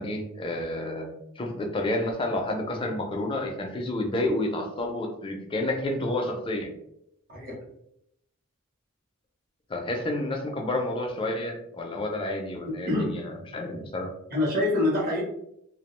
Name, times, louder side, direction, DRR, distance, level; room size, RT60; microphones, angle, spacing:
voice 1, 0.0-6.7 9.7-14.1, left 1 dB, 25° left, 2 dB, 0.4 m, -30 dB
voice 2, 14.3-15.2, left 2 dB, 45° right, -3 dB, 0.8 m, -25 dB
2.3 x 2.1 x 3.0 m, 0.77 s
head